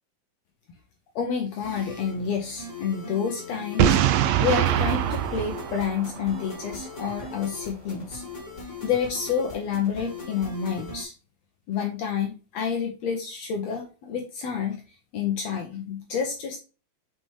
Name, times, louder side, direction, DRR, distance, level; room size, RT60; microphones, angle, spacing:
voice 1, 1.1-8.2 8.6-11.1 11.7-14.8 15.1-16.6, left 7 dB, 75° left, 3 dB, 1.5 m, -29 dB
sound 1, 1.6-11.0, left 3 dB, 25° left, 1.8 m, -40 dB
Boom, 3.8-6.7, right 10 dB, 80° right, 2.2 m, -23 dB
5.9 x 5.7 x 3.4 m, 0.33 s
omnidirectional pair, 4.3 m